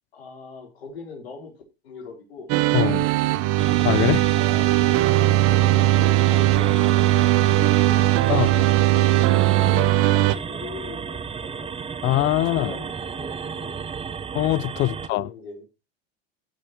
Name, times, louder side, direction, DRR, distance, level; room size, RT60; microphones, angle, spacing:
voice 1, 0.1-1.5 1.8-2.9 4.5-4.7 5.2-8.7 9.5-11.8 12.6-13.8 15.1-15.7, left 4 dB, 85° left, 4.3 m, -40 dB
sound 1, 2.5-10.3, right 16 dB, 50° right, 0.8 m, -19 dB
voice 2, 2.7-3.1 3.8-4.3 8.3-8.5 12.0-12.7 14.3-15.2, left 17 dB, 40° left, 0.4 m, -22 dB
sound 2, 3.6-15.1, right 6 dB, 20° right, 0.8 m, -33 dB
16.0 x 6.7 x 3.2 m
hypercardioid pair, 95°, 30 cm